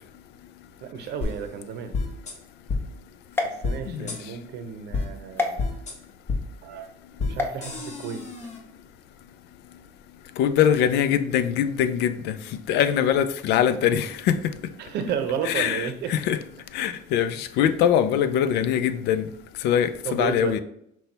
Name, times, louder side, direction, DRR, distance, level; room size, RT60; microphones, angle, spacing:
voice 1, 0.8-1.9 3.4-5.6 6.6-6.9 7.2-8.5 14.8-16.1 20.0-20.6, right 7 dB, 75° right, 0.6 m, -32 dB
sound 1, 1.2-1.3 1.9-2.3 2.7-2.8 3.6-3.8 4.1-4.2 4.9-5.0 5.6-5.9 6.3-6.4 7.2-7.3 7.6-8.6, left 3 dB, 40° left, 1.1 m, -28 dB
sound 2, 3.3-4.3 5.4-5.5 7.3-7.6, left 3 dB, 15° left, 0.7 m, -29 dB
voice 2, 10.4-12.4 12.7-14.5 15.4-16.4 16.7-19.2 19.6-20.6, left 9 dB, 80° left, 0.4 m, -22 dB
5.9 x 2.3 x 3.9 m
cardioid pair, 110°, 17 cm